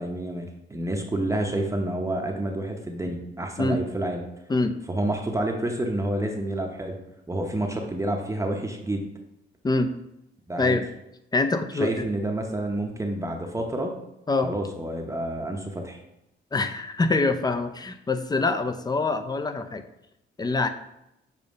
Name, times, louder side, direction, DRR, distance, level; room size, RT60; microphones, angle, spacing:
voice 1, 0.0-4.2 4.9-7.0 7.3-9.1 10.5-10.8 11.7-13.9 14.4-16.0, right 1 dB, 15° right, 1 dB, 0.8 m, -29 dB
voice 2, 11.3-12.0 14.3-14.5 16.5-19.8 20.4-20.7, left 3 dB, 20° left, 9 dB, 0.5 m, -25 dB
6.9 x 2.8 x 5.2 m, 0.85 s
cardioid pair, 90°, 20 cm